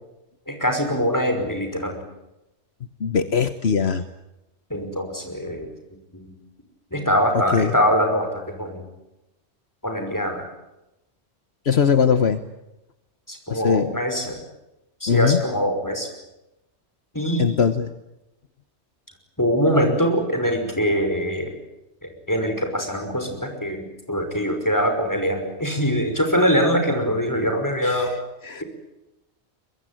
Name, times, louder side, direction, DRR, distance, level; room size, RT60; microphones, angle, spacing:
voice 1, 0.5-2.0 4.7-5.7 6.1-6.3 6.9-8.9 9.8-10.5 13.3-14.4 15.0-16.1 17.1-17.6 19.4-21.5 22.0-28.1, equal, 15° left, 5 dB, 5.5 m, -23 dB
voice 2, 3.0-4.0 7.5-7.7 11.6-12.4 13.5-13.9 15.1-15.4 17.4-17.9 27.8-28.1 28.4-28.6, left 6 dB, 65° left, 10 dB, 1.4 m, -20 dB
23.5 x 22.0 x 9.1 m, 0.94 s
omnidirectional pair, 1.2 m